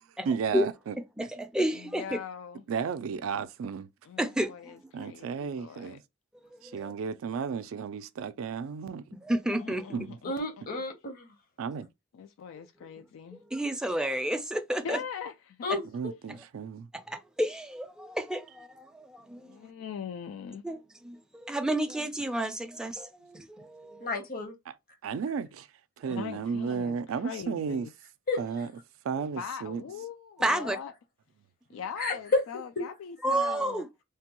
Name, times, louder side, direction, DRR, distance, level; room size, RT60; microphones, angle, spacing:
voice 1, 0.2-1.0 2.7-3.9 4.9-6.0 6.6-9.1 9.9-10.2 11.6-11.9 15.9-16.9 24.7-24.8 25.0-25.7 26.0-27.9 28.4-28.7 29.0-29.8, right 6 dB, 80° right, 0.3 m, -33 dB
voice 2, 1.2-2.1 4.2-4.9 6.6-6.9 9.2-9.9 12.6-12.7 13.3-15.0 15.7-15.8 16.3-16.4 16.9-19.6 20.6-24.1 26.1-26.2 30.4-30.8 31.7-31.8 33.2-33.9, right 1 dB, 5° right, 0.4 m, -31 dB
voice 3, 1.7-2.6 4.1-6.0 9.6-10.3 12.1-13.4 14.8-15.6 19.4-20.6 26.1-27.9 29.4-30.9 31.7-33.8, left 7 dB, 80° left, 0.3 m, -41 dB
voice 4, 10.2-11.3 15.6-16.1 24.0-24.5 28.3-28.4 32.0-32.4 32.8-32.9, left 3 dB, 45° left, 0.8 m, -30 dB
3.3 x 2.2 x 2.9 m
head